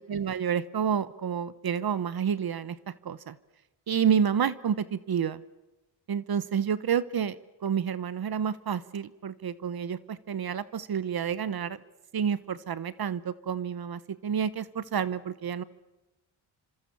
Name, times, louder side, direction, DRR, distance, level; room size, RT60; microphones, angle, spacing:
voice 1, 0.0-3.4 3.9-5.4 6.1-11.8 12.1-15.6, right 8 dB, 50° right, 16 dB, 1.1 m, -29 dB
27.0 x 26.0 x 7.1 m, 1.0 s
cardioid pair, 80°, 46 cm